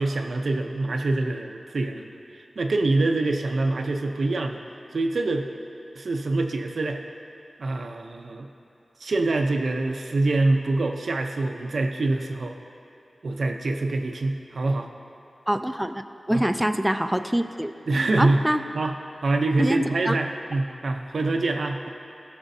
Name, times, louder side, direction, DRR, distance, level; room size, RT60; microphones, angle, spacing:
voice 1, 0.0-4.6 4.9-5.5 5.9-7.0 7.6-8.5 9.0-12.5 13.2-14.9 16.3-16.4 17.9-18.4 18.7-18.9 19.2-21.9, right 2 dB, 85° right, 4 dB, 0.5 m, -25 dB
voice 2, 15.5-16.0 16.3-17.7 18.2-18.6 19.6-20.2, equal, 5° right, 8 dB, 0.3 m, -24 dB
15.5 x 6.1 x 2.7 m, 2.7 s
wide cardioid pair, 60°, 0 cm